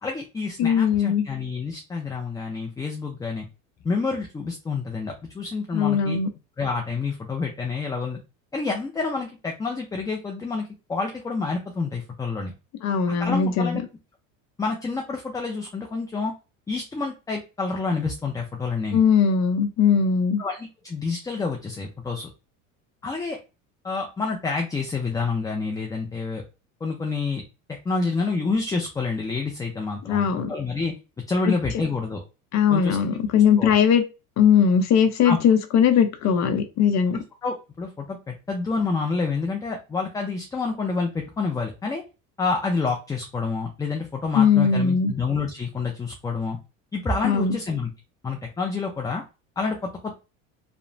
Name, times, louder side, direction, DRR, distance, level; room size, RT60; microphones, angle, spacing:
voice 1, 0.0-3.5 3.8-6.2 6.6-8.2 8.5-12.5 13.1-13.8 14.6-16.3 16.7-19.0 20.4-22.3 23.0-23.4 23.8-26.4 26.8-27.4 27.9-30.9 31.3-32.2 32.7-33.0 33.3-33.7 35.2-35.4 37.1-42.0 42.4-46.6 46.9-47.9 48.2-49.2 49.6-50.2, left 4 dB, 10° left, 0.3 m, -28 dB
voice 2, 0.6-1.3 5.7-6.3 12.8-13.8 18.9-20.4 30.1-30.5 31.5-31.6 32.5-34.0 34.4-37.2 44.3-45.1 47.2-47.6, left 7 dB, 45° left, 0.6 m, -20 dB
2.8 x 2.1 x 2.6 m
supercardioid pair, 90°, 40 cm